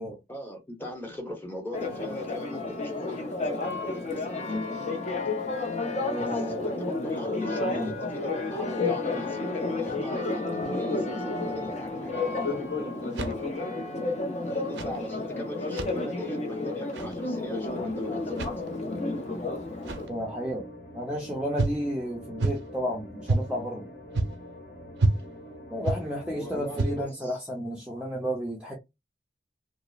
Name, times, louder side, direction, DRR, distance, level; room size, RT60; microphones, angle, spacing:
voice 1, 0.3-4.6 6.2-12.9 14.4-18.4 26.3-27.4, equal, 10° left, 0.9 m, -40 dB
Church bell, 1.7-20.1, left 3 dB, 40° left, 0.7 m, -31 dB
voice 2, 6.0-6.6 7.6-7.9 20.1-20.6 20.9-23.9 25.7-28.7, equal, 5° right, 0.5 m, -32 dB
sound 1, 13.0-13.7 14.6-15.0 15.6-16.0 16.8-17.2 18.3-18.7 19.8-20.2 21.6-21.8 22.4-22.7 23.3-23.5 24.1-24.5 25.0-25.2 25.8-26.1 26.7-27.1, right 2 dB, 80° right, 0.6 m, -28 dB
sound 2, 17.7-27.1, equal, 60° left, 1.2 m, -45 dB
2.8 x 2.0 x 2.3 m
head